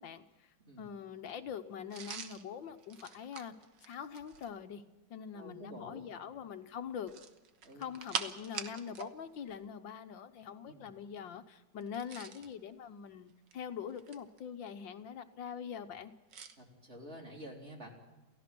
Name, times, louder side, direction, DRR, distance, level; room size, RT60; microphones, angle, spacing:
voice 1, 0.0-3.5 3.8-4.8 5.1-7.1 7.7-16.1, left 7 dB, 75° left, 9 dB, 1.7 m, -44 dB
sound 1, 1.9-4.6 7.0-9.1 9.4-9.6 11.8-12.5 13.3-14.4 16.3-16.6, right 6 dB, 65° right, 1.9 m, -44 dB
voice 2, 5.3-6.0 7.6-7.8 10.7-10.9 16.6-17.9, equal, 35° right, 0 dB, 4.3 m, -49 dB
28.5 x 16.0 x 6.1 m, 1.1 s
omnidirectional pair, 2.1 m